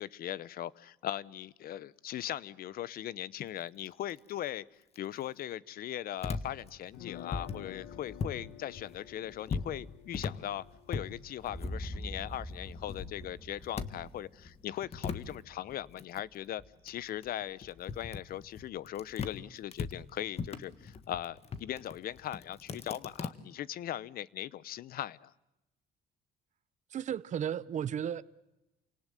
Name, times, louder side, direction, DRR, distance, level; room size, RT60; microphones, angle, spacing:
voice 1, 0.0-4.7 5.0-25.3, left 12 dB, 60° left, 0.9 m, -39 dB
sound 1, 6.2-8.5 8.7-12.3 12.6-14.2 14.4-19.4 19.7-23.3, left 5 dB, 40° left, 1.7 m, -39 dB
sound 2, 6.9-12.9, left 11 dB, 90° left, 1.8 m, -51 dB
sound 3, 11.4-15.5, equal, 15° left, 1.8 m, -44 dB
voice 2, 26.9-28.2, right 9 dB, 45° right, 0.8 m, -34 dB
28.5 x 18.5 x 9.2 m
cardioid pair, 110°, 17 cm